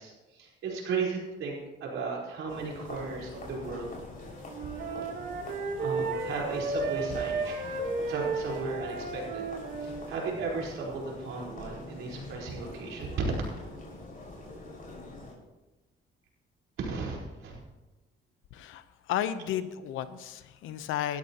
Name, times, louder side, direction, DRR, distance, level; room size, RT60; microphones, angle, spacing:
voice 1, 0.0-3.9 5.8-7.8 8.1-9.4 9.8-13.2 16.8-17.6, right 4 dB, 85° right, -3 dB, 4.5 m, -35 dB
sound 1, 2.5-15.3, left 2 dB, 45° left, 5.7 m, -44 dB
Wind instrument woodwind instrument, 4.5-10.0, right 3 dB, 70° right, 3.0 m, -33 dB
voice 2, 18.5-21.2, left 11 dB, 90° left, 12 dB, 0.9 m, -33 dB
19.5 x 13.0 x 3.0 m, 1.1 s
cardioid pair, 90°, 20 cm